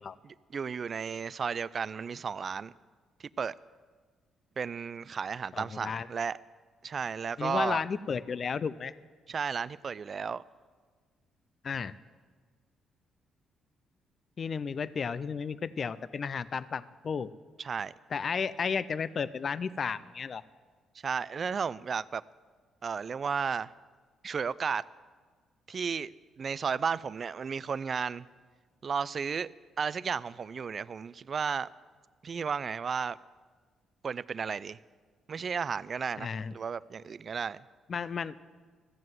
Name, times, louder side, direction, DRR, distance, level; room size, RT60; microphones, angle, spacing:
voice 1, 0.2-2.7 3.2-3.5 4.6-6.4 6.8-7.8 9.3-10.4 17.6-17.9 21.0-22.2 22.8-23.7 24.2-24.9 25.7-26.1 26.4-28.3 28.8-29.5 29.8-31.7 32.2-33.2 34.0-34.8 35.3-37.6, right 6 dB, 45° right, 0.3 m, -33 dB
voice 2, 5.5-6.1 7.4-8.9 11.6-11.9 14.4-17.3 18.1-20.4 36.2-36.5 37.9-38.3, left 6 dB, 45° left, 0.4 m, -33 dB
13.5 x 7.6 x 7.8 m
cardioid pair, 90°, 0 cm